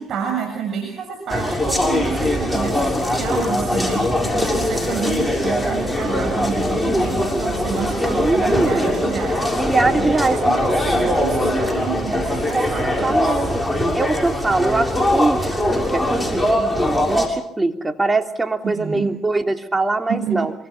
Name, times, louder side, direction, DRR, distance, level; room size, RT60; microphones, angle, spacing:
voice 1, 0.0-13.4 18.6-19.2 20.1-20.5, right 6 dB, 55° right, 3 dB, 6.8 m, -29 dB
sound 1, 1.3-17.3, left 1 dB, 5° left, 6.9 m, -21 dB
voice 2, 8.0-8.9 9.6-10.4 12.5-13.6 13.9-20.5, right 2 dB, 20° right, 5 dB, 3.1 m, -22 dB
27.0 x 25.0 x 6.0 m, 0.70 s
supercardioid pair, 65°, 0 cm